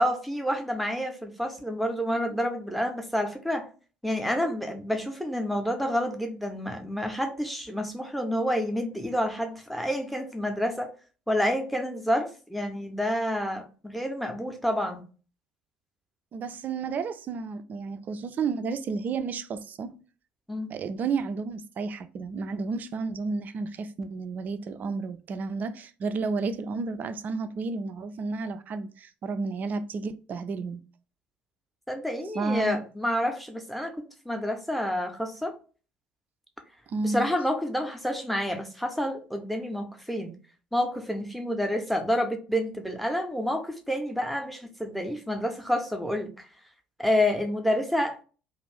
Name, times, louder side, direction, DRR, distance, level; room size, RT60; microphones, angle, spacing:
voice 1, 0.0-3.7 4.0-10.9 11.3-15.0 20.5-20.7 31.9-33.9 34.3-35.5 37.0-40.4 40.7-46.5 47.0-48.2, equal, ahead, 0.6 m, -28 dB
voice 2, 16.3-20.0 20.7-30.8 32.3-32.8 36.9-37.2, right 4 dB, 40° right, 0.3 m, -31 dB
2.5 x 2.4 x 3.3 m
figure-of-eight pair, 55°, 5 cm